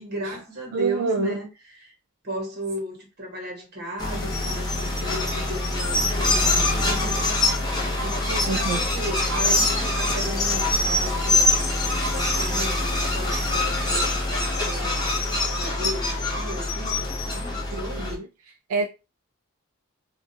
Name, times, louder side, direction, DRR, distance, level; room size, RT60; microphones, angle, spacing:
voice 1, 0.0-1.9 2.2-7.3 8.0-11.5 12.1-14.1 14.4-15.3 15.6-18.2, right 1 dB, 45° right, 1.0 m, -35 dB
voice 2, 0.7-1.4 8.5-8.8 17.7-18.3 18.7-18.9, right 3 dB, 70° right, 0.3 m, -27 dB
sound 1, 4.0-18.2, left 2 dB, 20° left, 0.5 m, -24 dB
2.3 x 2.0 x 2.7 m
head